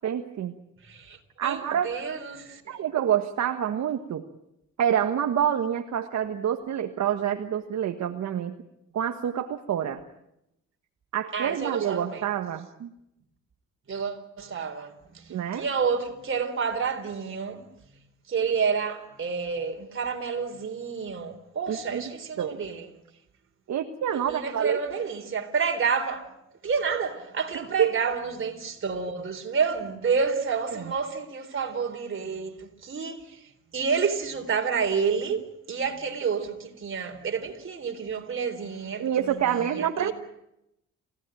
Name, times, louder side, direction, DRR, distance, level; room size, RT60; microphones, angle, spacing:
voice 1, 0.0-0.5 1.4-1.9 2.7-4.2 4.8-8.5 8.9-10.0 11.1-12.9 15.3-15.6 21.7-22.0 22.4-22.6 23.7-24.8 27.8-27.9 39.0-40.1, right 9 dB, 65° right, 1.5 m, -27 dB
voice 2, 0.8-2.9 11.3-12.3 13.9-17.7 18.3-22.9 24.1-26.3 26.6-40.1, right 5 dB, 45° right, 4.0 m, -29 dB
28.5 x 16.5 x 9.1 m
cardioid pair, 90°, 30 cm